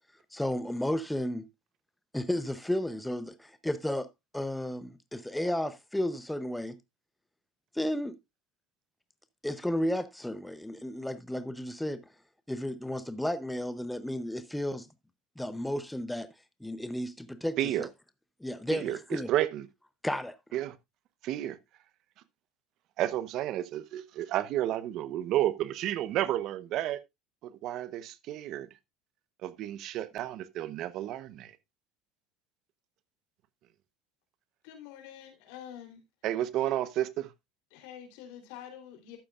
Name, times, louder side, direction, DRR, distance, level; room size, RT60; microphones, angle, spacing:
voice 1, 0.3-1.5 2.1-6.8 7.7-8.2 9.4-12.0 12.5-14.9 15.4-16.3 16.6-17.9 18.4-19.3 20.0-20.4, left 1 dB, 5° left, 0.7 m, -33 dB
voice 2, 18.7-19.7 20.5-20.8 21.2-21.6 23.0-27.0 27.4-28.7 29.4-31.5 36.2-37.3, right 13 dB, 55° right, 0.9 m, -31 dB
voice 3, 34.6-36.0 36.6-36.7 37.7-39.2, left 10 dB, 75° left, 3.4 m, -47 dB
12.0 x 8.9 x 2.4 m
supercardioid pair, 100°, 0 cm